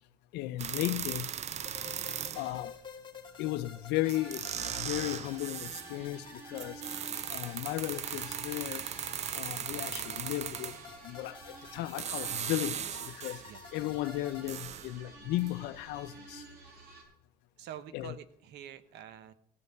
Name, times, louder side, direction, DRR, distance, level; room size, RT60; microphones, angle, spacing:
voice 1, 0.3-1.2 2.4-2.7 3.4-4.5 4.8-6.7 7.3-8.8 9.4-10.7 11.0-11.3 11.7-12.8 13.2-13.4 13.7-16.4 17.9-18.1, left 16 dB, 90° left, 0.6 m, -35 dB
sound 1, 0.6-2.6 3.7-3.8 4.1-5.9 6.6-11.0 11.7-13.5 13.9-15.6 15.9-16.0, right 8 dB, 40° right, 0.6 m, -38 dB
sound 2, 1.6-14.5, left 4 dB, 30° left, 2.3 m, -51 dB
sound 3, 4.0-17.0, right 3 dB, 65° right, 6.0 m, -52 dB
voice 2, 17.6-19.3, right 10 dB, 85° right, 1.0 m, -47 dB
16.5 x 5.5 x 7.8 m
cardioid pair, 110°, 17 cm